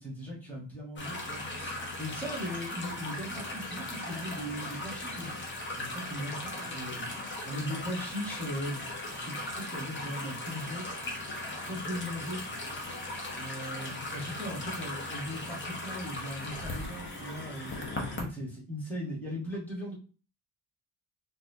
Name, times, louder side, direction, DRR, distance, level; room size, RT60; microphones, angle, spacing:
voice 1, 0.0-5.4 5.7-11.0 11.7-12.4 13.0-19.9, equal, 5° left, -5 dB, 1.2 m, -39 dB
sound 1, 1.0-18.2, left 2 dB, 25° left, 0.7 m, -38 dB
4.1 x 2.3 x 2.7 m, 0.37 s
wide cardioid pair, 180°, 47 cm